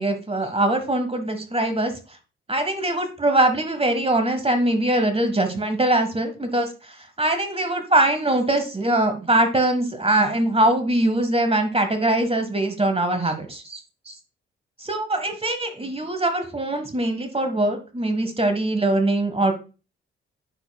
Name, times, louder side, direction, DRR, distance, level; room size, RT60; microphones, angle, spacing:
voice 1, 0.0-1.9 2.5-6.7 7.2-13.8 14.1-14.2 14.8-19.5, right 1 dB, 20° right, 7 dB, 1.3 m, -22 dB
9.3 x 6.0 x 2.3 m, 0.33 s
hypercardioid pair, 45°, 30 cm